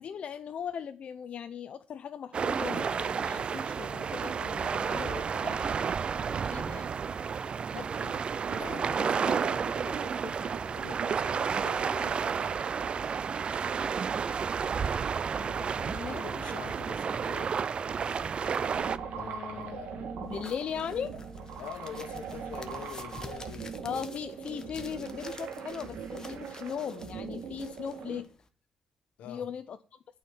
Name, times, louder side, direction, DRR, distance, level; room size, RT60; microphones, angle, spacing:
voice 1, 0.0-5.6 6.3-6.9 7.7-7.9 15.4-16.2 19.1-21.1 23.8-28.3 29.3-29.8, left 7 dB, 60° left, 0.5 m, -39 dB
sound 1, 2.3-19.0, right 6 dB, 50° right, 0.4 m, -31 dB
voice 2, 4.9-5.4 7.9-8.2 8.5-12.7 16.2-17.6 19.1-20.0 21.6-24.0 29.2-29.5, left 9 dB, 80° left, 1.1 m, -45 dB
sound 2, 18.7-28.2, right 6 dB, 80° right, 1.6 m, -41 dB
sound 3, 20.3-28.5, left 3 dB, 30° left, 1.3 m, -50 dB
8.8 x 4.6 x 7.2 m
cardioid pair, 70°, 2 cm